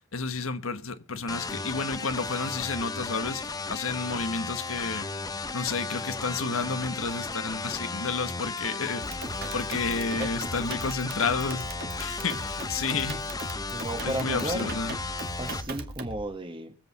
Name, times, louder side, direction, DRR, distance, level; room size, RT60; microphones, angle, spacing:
voice 1, 0.1-5.1 5.5-9.3 9.5-11.7 12.0-13.2 14.0-15.0, left 4 dB, 80° left, 1.4 m, -31 dB
sound 1, 1.3-15.6, left 3 dB, 20° left, 0.8 m, -35 dB
sound 2, 9.0-16.2, right 2 dB, 45° right, 2.1 m, -38 dB
voice 2, 13.7-14.7 15.4-16.8, right 1 dB, 25° right, 1.5 m, -33 dB
24.0 x 8.1 x 4.2 m
head